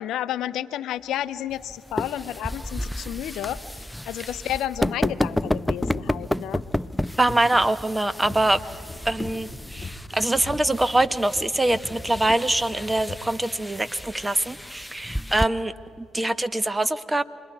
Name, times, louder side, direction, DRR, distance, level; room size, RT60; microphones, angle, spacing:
voice 1, 0.0-6.6, left 12 dB, 75° left, 15 dB, 0.6 m, -31 dB
sound 1, 1.5-15.5, left 1 dB, 5° left, 0.5 m, -32 dB
sound 2, 3.7-3.8 4.0-4.1 5.1-13.5 14.2-14.3 14.8-15.4 15.7-16.3, left 2 dB, 25° left, 1.7 m, -39 dB
voice 2, 7.2-8.6 9.0-15.7 16.0-17.2, right 1 dB, 15° right, 13 dB, 1.1 m, -24 dB
28.5 x 22.0 x 4.7 m, 2.6 s
hypercardioid pair, 55°, 0 cm